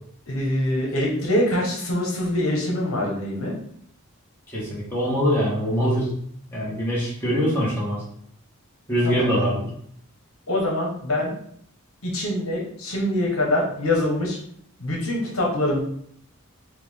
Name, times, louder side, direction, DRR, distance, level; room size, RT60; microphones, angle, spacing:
voice 1, 0.3-3.6 9.0-9.4 10.5-11.3 12.0-14.4 14.8-15.8, left 1 dB, 75° left, -2 dB, 1.1 m, -24 dB
voice 2, 4.5-6.1 6.5-8.0 8.9-9.7, equal, 10° left, -7 dB, 1.4 m, -23 dB
4.6 x 2.5 x 3.6 m, 0.64 s
head